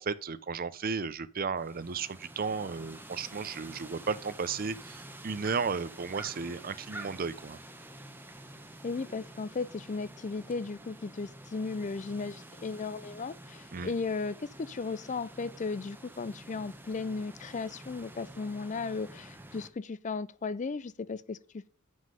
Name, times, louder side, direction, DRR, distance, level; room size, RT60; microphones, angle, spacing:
voice 1, 0.0-7.6 13.7-13.9, right 5 dB, 45° right, 0.6 m, -34 dB
sound 1, 1.6-19.7, right 1 dB, 10° right, 0.9 m, -48 dB
voice 2, 8.8-21.7, left 4 dB, 35° left, 0.4 m, -36 dB
7.2 x 6.3 x 5.6 m
head